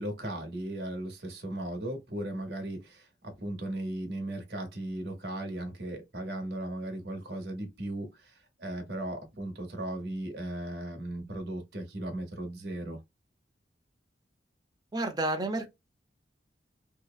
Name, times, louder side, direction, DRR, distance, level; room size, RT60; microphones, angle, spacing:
voice 1, 0.0-13.0, right 1 dB, 60° right, 1.0 m, -37 dB
voice 2, 14.9-15.7, right 2 dB, 20° right, 0.5 m, -30 dB
2.8 x 2.0 x 2.3 m
head